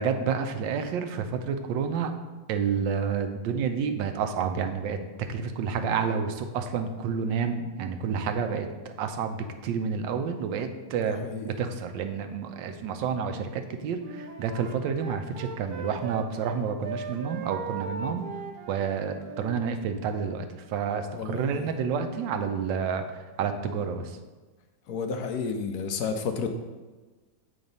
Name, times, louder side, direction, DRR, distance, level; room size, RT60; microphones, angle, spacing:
voice 1, 0.0-2.1 2.5-5.0 5.3-18.3 18.7-23.0 23.4-24.2, right 6 dB, 90° right, 7 dB, 1.4 m, -29 dB
voice 2, 11.0-11.5 21.1-21.7 24.9-26.5, left 5 dB, 70° left, 5 dB, 1.0 m, -31 dB
Wind instrument woodwind instrument, 14.0-16.6 16.8-19.6, right 4 dB, 70° right, 1.1 m, -38 dB
7.7 x 4.0 x 5.3 m, 1.3 s
omnidirectional pair, 1.9 m